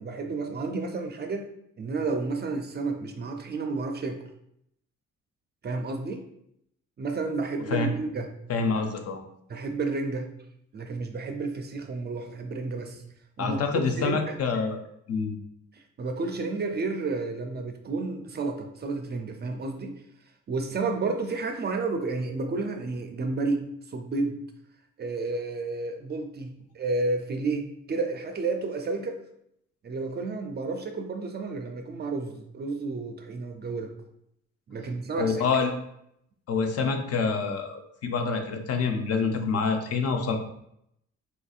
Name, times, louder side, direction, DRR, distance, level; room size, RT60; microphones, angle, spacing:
voice 1, 0.0-1.5 1.8-4.2 5.6-6.2 7.0-8.3 9.5-10.3 10.7-13.0 13.4-14.3 15.7-19.9 20.5-24.4 25.0-29.2 29.8-33.9 34.7-35.4, right 3 dB, 35° right, 5 dB, 0.4 m, -31 dB
voice 2, 8.5-9.2 13.4-14.8 15.1-15.3 35.2-35.7 36.5-40.4, left 4 dB, 55° left, 5 dB, 0.6 m, -26 dB
4.0 x 2.6 x 2.4 m, 0.74 s
cardioid pair, 90°, 30 cm